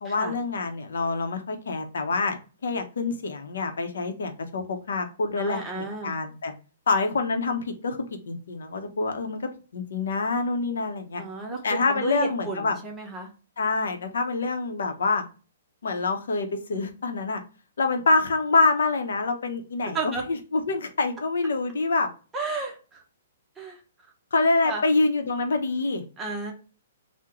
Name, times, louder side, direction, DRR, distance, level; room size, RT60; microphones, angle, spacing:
voice 1, 0.0-6.5 6.9-8.0 8.3-11.2 11.6-12.8 13.6-15.2 15.8-17.4 17.8-22.1 24.3-26.0, left 3 dB, 85° left, 6 dB, 0.7 m, -26 dB
voice 2, 5.4-6.1 11.2-13.3 19.9-20.2 22.3-23.0 23.6-23.8 24.6-24.8 26.2-26.5, right 3 dB, 10° right, 0 dB, 0.7 m, -32 dB
3.6 x 2.1 x 2.8 m, 0.36 s
hypercardioid pair, 160°, 0 cm